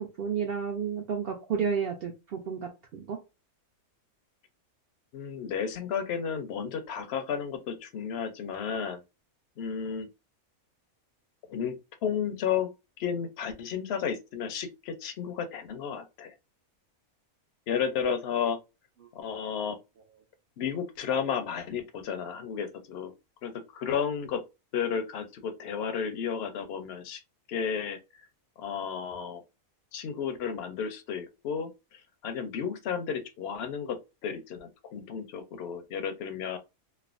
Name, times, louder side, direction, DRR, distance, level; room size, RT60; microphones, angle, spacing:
voice 1, 0.0-3.2, right 6 dB, 75° right, 0.5 m, -31 dB
voice 2, 5.1-9.0 9.6-10.1 11.5-11.7 12.0-12.7 13.0-16.3 17.7-18.6 19.1-19.8 20.6-23.1 23.4-24.4 24.7-27.2 27.5-28.0 28.6-29.4 29.9-31.7 32.2-36.6, left 7 dB, 65° left, 0.6 m, -32 dB
3.2 x 2.0 x 2.4 m
omnidirectional pair, 1.5 m